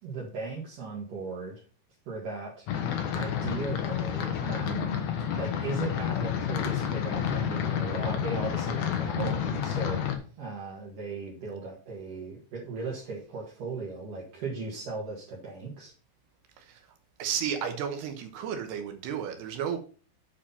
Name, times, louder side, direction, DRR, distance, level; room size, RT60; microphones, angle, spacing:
voice 1, 0.0-1.6 2.1-2.7 3.1-5.1 5.4-10.0 10.4-15.9, right 4 dB, 55° right, 2.9 m, -37 dB
sound 1, 2.7-10.2, left 9 dB, 80° left, 1.6 m, -30 dB
voice 2, 17.2-19.8, right 8 dB, 75° right, 3.0 m, -33 dB
8.6 x 5.1 x 5.6 m
omnidirectional pair, 5.0 m